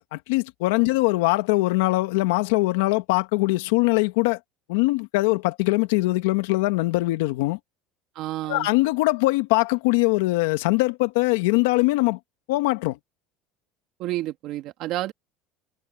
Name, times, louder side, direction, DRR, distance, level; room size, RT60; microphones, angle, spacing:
voice 1, 0.0-4.4 4.7-7.6 8.5-12.2 12.5-13.0, left 21 dB, 85° left, 1.6 m, -22 dB
voice 2, 8.2-8.7 14.0-15.1, right 15 dB, 55° right, 2.2 m, -30 dB
cardioid pair, 145°, 0 cm